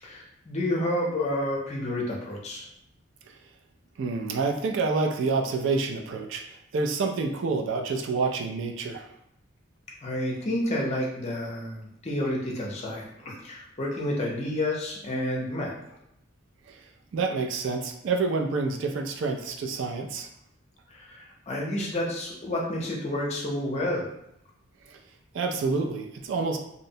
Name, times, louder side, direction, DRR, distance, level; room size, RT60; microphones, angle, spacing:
voice 1, 0.0-2.7 10.0-15.7 20.9-24.1, left 1 dB, 35° left, -3 dB, 0.6 m, -30 dB
voice 2, 4.0-9.1 16.7-16.8 17.1-20.3 24.9-25.0 25.3-26.6, right 4 dB, 65° right, 4 dB, 0.3 m, -28 dB
2.6 x 2.0 x 2.6 m, 0.79 s
head